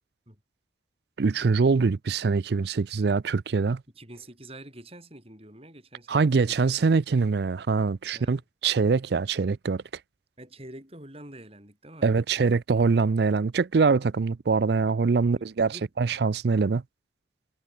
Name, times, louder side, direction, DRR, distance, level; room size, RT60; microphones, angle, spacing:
voice 1, 1.2-3.8 6.1-9.8 12.0-16.8, right 4 dB, 55° right, 0.4 m, -24 dB
voice 2, 4.0-6.8 8.1-8.4 10.4-12.2 15.2-15.9, right 1 dB, 30° right, 6.9 m, -47 dB
head